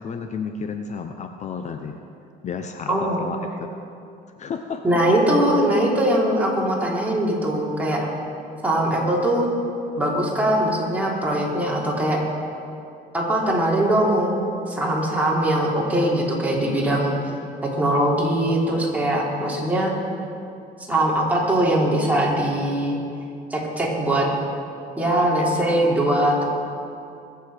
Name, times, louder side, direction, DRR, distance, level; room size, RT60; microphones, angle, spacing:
voice 1, 0.0-2.0 2.4-3.7 4.4-4.8 25.2-25.6, left 5 dB, 45° left, 6 dB, 0.7 m, -32 dB
voice 2, 2.9-3.2 4.8-8.1 8.6-9.5 10.0-12.2 13.1-14.3 14.7-17.1 17.6-19.9 20.9-23.0 23.5-24.3 25.0-26.4, right 1 dB, 10° right, -4 dB, 3.3 m, -21 dB
22.0 x 7.9 x 5.0 m, 2.6 s
cardioid pair, 110°, 17 cm